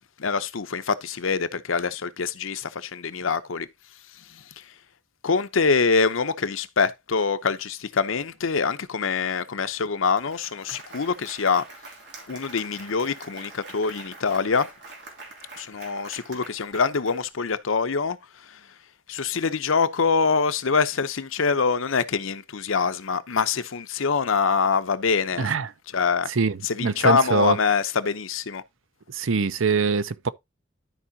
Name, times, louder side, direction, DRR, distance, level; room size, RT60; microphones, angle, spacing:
voice 1, 0.2-3.7 4.3-4.6 5.2-11.6 12.3-14.7 15.5-18.2 18.5-18.6 19.1-25.5 25.9-26.3 26.6-28.6, left 5 dB, 85° left, 0.8 m, -24 dB
Applause, 9.7-9.8 10.0-17.6, right 3 dB, 60° right, 2.8 m, -45 dB
voice 2, 25.4-25.7 26.3-27.6 29.1-30.3, right 4 dB, 85° right, 0.6 m, -23 dB
12.5 x 4.7 x 2.8 m
head